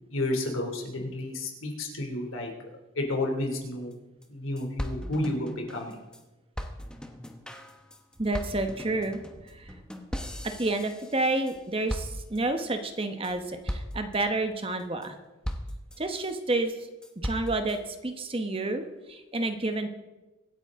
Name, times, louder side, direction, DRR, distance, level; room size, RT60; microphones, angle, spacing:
voice 1, 0.1-2.5 3.0-4.0 4.3-5.9, left 1 dB, 85° left, 2 dB, 2.9 m, -31 dB
sound 1, 3.9-4.0 4.2-4.3 4.6-6.2 6.6-11.6 11.9-12.6 13.0-13.3 13.7-14.2 14.6-15.1 15.4-16.4 16.8-17.8, equal, 5° left, 1.0 m, -38 dB
voice 2, 8.2-9.7 10.6-15.2 16.0-16.9 17.2-19.9, right 2 dB, 25° right, 7 dB, 1.1 m, -30 dB
24.0 x 9.1 x 3.7 m, 1.1 s
head